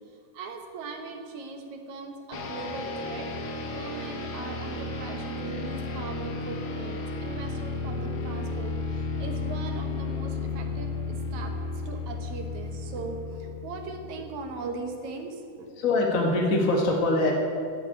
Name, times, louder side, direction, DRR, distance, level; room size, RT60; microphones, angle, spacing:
voice 1, 0.3-3.3 3.7-11.5 11.8-15.7, right 3 dB, 65° right, 4 dB, 2.6 m, -39 dB
sound 1, 2.3-14.5, left 3 dB, 80° left, 0.9 m, -33 dB
voice 2, 15.8-17.3, left 2 dB, 35° left, -1 dB, 1.5 m, -23 dB
11.5 x 8.3 x 8.8 m, 2.4 s
omnidirectional pair, 3.7 m